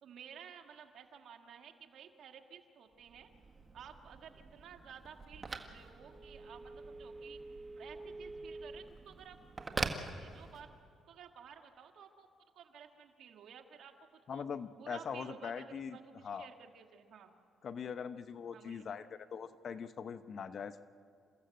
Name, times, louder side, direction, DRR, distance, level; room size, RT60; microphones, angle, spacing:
voice 1, 0.0-3.3 3.7-7.4 7.8-9.4 10.2-10.7 11.1-12.3 12.5-14.4 14.8-17.3 18.5-18.9, right 7 dB, 70° right, 5 dB, 1.8 m, -54 dB
Telephone, 3.0-10.9, right 3 dB, 30° right, 1.5 m, -44 dB
voice 2, 14.3-16.0 16.2-16.5 17.6-20.8, left 6 dB, 55° left, 11 dB, 0.9 m, -42 dB
29.0 x 14.5 x 7.7 m, 2.2 s
cardioid pair, 90°, 0 cm